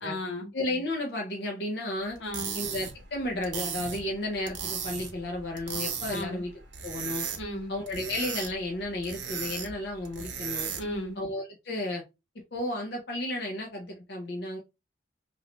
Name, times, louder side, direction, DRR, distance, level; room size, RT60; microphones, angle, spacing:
voice 1, 0.0-0.5 2.2-2.6 6.1-6.4 7.4-7.7 10.8-11.2, left 1 dB, 85° left, 1.2 m, -35 dB
voice 2, 0.5-2.2 2.5-6.5 6.8-7.3 7.7-10.7 11.2-12.0 12.5-14.6, left 1 dB, 60° left, 0.7 m, -33 dB
sound 1, 2.1-11.0, right 6 dB, 75° right, 0.7 m, -37 dB
3.2 x 2.6 x 2.9 m
head